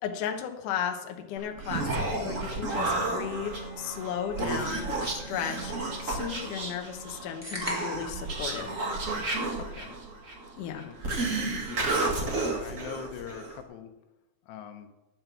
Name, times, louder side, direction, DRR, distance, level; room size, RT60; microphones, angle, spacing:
voice 1, 0.0-8.7 10.6-10.9, left 8 dB, 70° left, 4 dB, 2.1 m, -35 dB
Human voice, 1.4-13.6, right 2 dB, 80° right, 0.7 m, -32 dB
Bowed string instrument, 2.0-7.8, right 1 dB, 20° left, 2.7 m, -46 dB
sound 1, 7.4-8.2, equal, 5° right, 1.9 m, -36 dB
voice 2, 9.6-10.0 10.8-13.9 14.5-14.9, left 9 dB, 85° left, 7 dB, 3.1 m, -43 dB
11.0 x 7.6 x 7.2 m, 1.0 s
omnidirectional pair, 4.8 m